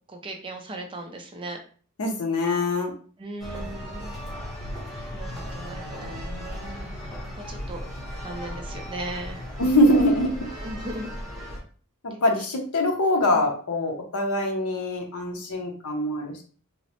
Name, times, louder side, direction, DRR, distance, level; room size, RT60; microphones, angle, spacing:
voice 1, 0.1-1.6 3.2-4.2 5.1-6.3 7.4-7.8 8.2-9.4 10.6-11.1 12.1-12.2 13.3-13.4, right 1 dB, 25° right, 2 dB, 0.4 m, -37 dB
voice 2, 2.0-2.9 9.6-10.5 12.0-16.4, left 1 dB, 80° left, 2 dB, 0.7 m, -23 dB
sound 1, 3.4-11.6, equal, ahead, 0.8 m, -36 dB
2.9 x 2.0 x 2.8 m, 0.42 s
head